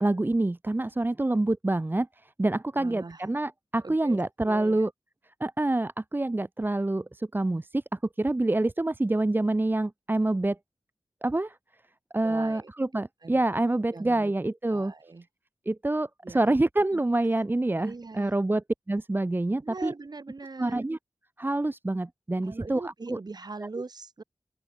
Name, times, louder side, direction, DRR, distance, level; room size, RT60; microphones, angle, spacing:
voice 1, 0.0-4.9 5.4-7.8 8.2-10.6 11.2-11.6 12.1-14.9 15.7-19.9 20.6-21.0 21.4-23.2 23.6-23.7, right 2 dB, 20° right, 0.9 m, -27 dB
voice 2, 2.7-3.2 3.8-4.2 4.4-4.9 12.2-12.7 13.2-13.4 13.9-14.3 14.7-15.3 16.2-16.4 16.9-17.0 17.8-18.3 19.6-20.9 22.4-24.2, right 3 dB, 50° right, 6.4 m, -41 dB
open air
wide cardioid pair, 80°, 9 cm